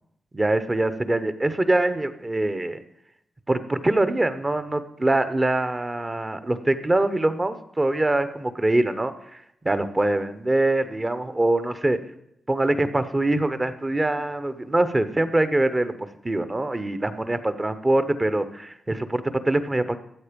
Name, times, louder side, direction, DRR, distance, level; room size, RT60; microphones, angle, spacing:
voice 1, 0.3-2.8 3.5-12.0 12.5-16.0 16.2-20.0, right 2 dB, 20° right, 11 dB, 0.9 m, -23 dB
13.5 x 7.9 x 5.2 m, 0.77 s
cardioid pair, 95°, 0 cm